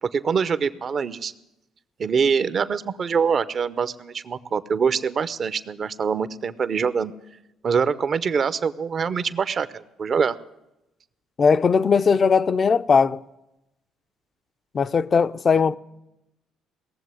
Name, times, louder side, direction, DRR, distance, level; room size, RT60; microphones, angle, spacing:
voice 1, 0.0-1.3 2.0-7.1 7.6-10.4, right 6 dB, 50° right, 0.7 m, -24 dB
voice 2, 11.4-13.2 14.7-15.8, left 5 dB, 40° left, 0.5 m, -19 dB
18.0 x 7.4 x 9.8 m
supercardioid pair, 65°, 0 cm